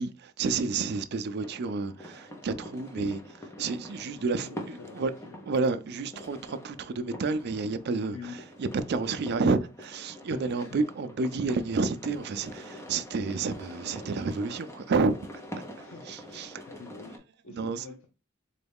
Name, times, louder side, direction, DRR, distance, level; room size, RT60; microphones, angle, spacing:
voice 1, 0.0-3.2 3.6-5.1 5.5-8.3 8.6-15.2 16.1-16.6 17.5-17.8, right 4 dB, 55° right, 0.4 m, -30 dB
sound 1, 1.4-17.2, equal, 15° left, 0.7 m, -45 dB
voice 2, 4.0-5.5 8.1-8.4 10.3-10.8 15.8-17.2 17.4-18.1, left 4 dB, 85° left, 0.6 m, -46 dB
4.0 x 2.3 x 3.4 m
head